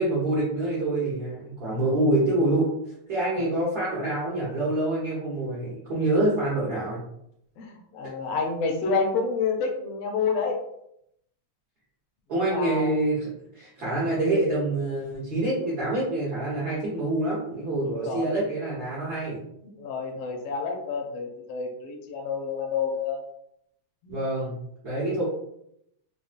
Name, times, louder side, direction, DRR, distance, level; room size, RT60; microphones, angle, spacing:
voice 1, 0.0-2.7 3.1-7.0 12.3-13.3 13.5-19.4 24.1-24.6 24.8-25.2, right 1 dB, 70° right, -7 dB, 0.9 m, -26 dB
voice 2, 7.6-10.6 12.3-12.9 13.8-13.9 17.8-18.4 19.6-23.2 24.0-24.2, left 5 dB, 70° left, 1 dB, 1.5 m, -29 dB
5.2 x 2.1 x 2.5 m, 0.76 s
omnidirectional pair, 3.3 m